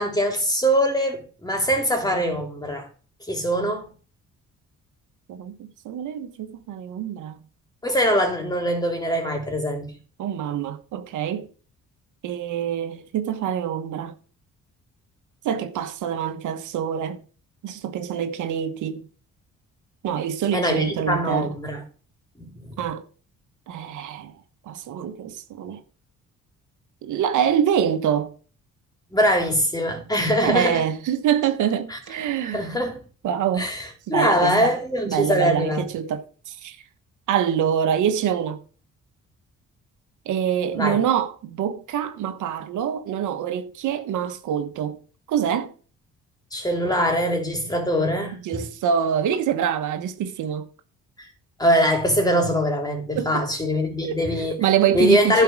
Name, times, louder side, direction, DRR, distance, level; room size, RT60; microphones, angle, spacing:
voice 1, 0.0-2.9 3.3-3.9 7.8-9.9 20.5-21.8 22.4-22.8 29.1-30.8 31.9-32.0 32.4-33.0 33.6-35.8 40.7-41.0 46.5-48.6 51.2-51.3 51.6-54.6 54.9-55.4, equal, 15° left, 3.4 m, -22 dB
voice 2, 5.3-7.4 10.2-11.5 12.2-14.1 15.4-17.2 17.6-19.1 20.0-21.5 22.8-23.0 23.7-24.3 24.7-25.8 27.0-28.3 30.4-32.7 33.2-33.7 34.1-34.7 35.1-36.8 37.3-38.6 40.3-45.0 45.3-45.7 48.4-50.7 53.1-53.5 54.0-54.2 54.6-55.4, right 9 dB, 80° right, 1.2 m, -25 dB
11.5 x 4.6 x 6.1 m
cardioid pair, 90°, 30 cm